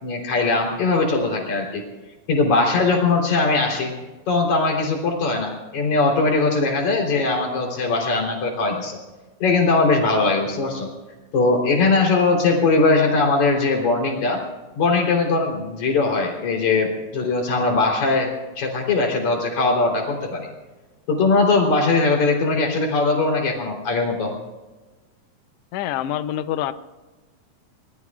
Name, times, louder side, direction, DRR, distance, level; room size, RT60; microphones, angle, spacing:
voice 1, 0.0-1.8 2.3-3.9 4.3-9.0 9.4-10.9 11.3-14.4 14.8-20.5 21.1-24.3, left 3 dB, 65° left, 0 dB, 5.0 m, -20 dB
voice 2, 25.7-26.7, left 11 dB, 80° left, 11 dB, 1.4 m, -26 dB
25.5 x 20.0 x 2.4 m, 1.2 s
omnidirectional pair, 3.7 m